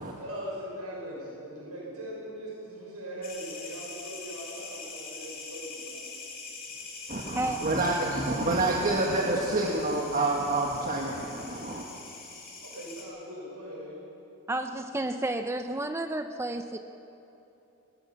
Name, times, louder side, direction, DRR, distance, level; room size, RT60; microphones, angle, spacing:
voice 1, 0.2-6.1 12.6-14.0, equal, 90° right, -4 dB, 6.1 m, -40 dB
sound 1, 3.2-13.0, left 4 dB, 45° left, 6.1 m, -43 dB
voice 2, 7.1-11.8, right 2 dB, 35° right, -1 dB, 1.6 m, -28 dB
voice 3, 14.5-16.8, right 2 dB, 10° right, 7 dB, 0.5 m, -31 dB
20.5 x 20.0 x 7.5 m, 3.0 s
head